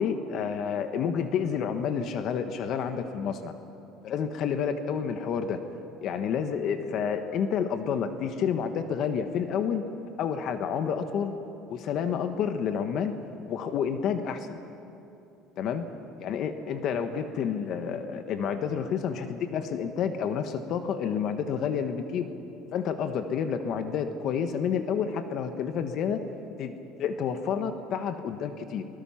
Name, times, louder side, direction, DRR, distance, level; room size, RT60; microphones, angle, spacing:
voice 1, 0.0-3.5 4.0-5.7 6.0-9.8 10.2-11.3 11.7-13.2 13.5-14.6 15.6-15.8 16.2-22.3 22.7-26.2 26.6-26.7 27.0-28.8, left 7 dB, 55° left, 8 dB, 1.3 m, -29 dB
28.5 x 19.5 x 5.9 m, 2.8 s
cardioid pair, 130°, 0 cm